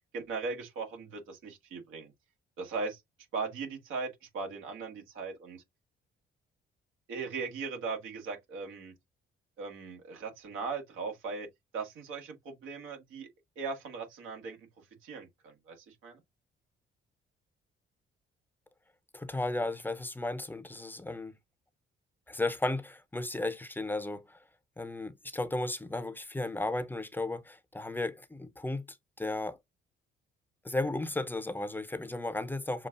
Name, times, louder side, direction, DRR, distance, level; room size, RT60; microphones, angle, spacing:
voice 1, 0.1-2.1 2.6-3.0 3.3-5.6 7.1-8.9 9.6-11.5 11.7-13.3 13.5-16.2, right 4 dB, 85° right, 1.6 m, -39 dB
voice 2, 19.1-21.3 22.3-24.4 24.8-29.6 30.6-32.9, left 2 dB, 10° left, 0.6 m, -34 dB
6.5 x 2.3 x 2.5 m
cardioid pair, 90°, 20 cm